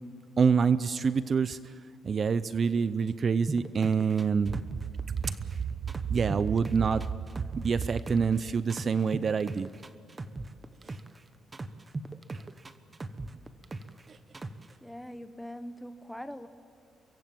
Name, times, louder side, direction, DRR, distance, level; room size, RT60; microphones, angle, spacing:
voice 1, 0.4-1.7 2.0-4.6 5.2-5.6 6.1-7.0 7.6-9.7 10.8-11.0 14.1-14.2, right 6 dB, 45° right, 15 dB, 0.6 m, -26 dB
sound 1, 3.5-5.6 5.9-8.4 8.7-11.2 11.5-14.0 14.3-14.7, right 3 dB, 25° right, 1.1 m, -39 dB
voice 2, 14.8-16.5, equal, 5° left, 11 dB, 1.3 m, -42 dB
24.5 x 22.5 x 7.6 m, 2.3 s
cardioid pair, 90°, 0 cm